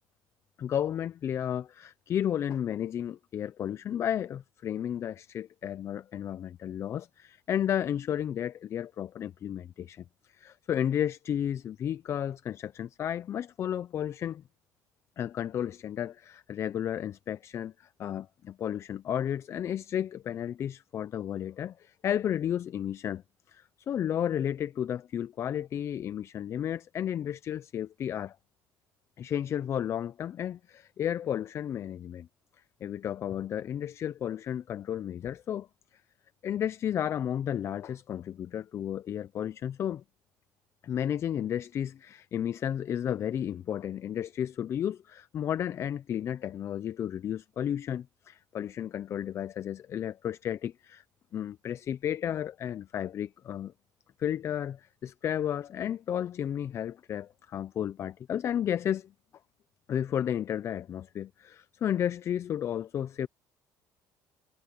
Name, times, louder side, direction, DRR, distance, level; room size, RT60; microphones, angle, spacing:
voice 1, 0.6-10.0 10.3-14.4 15.2-23.2 23.5-28.4 29.2-32.3 32.8-35.7 36.4-40.0 40.8-51.0 51.3-53.7 54.2-59.1 59.9-63.3, left 10 dB, 40° left, 0.4 m, -33 dB
cardioid pair, 130°, 7 cm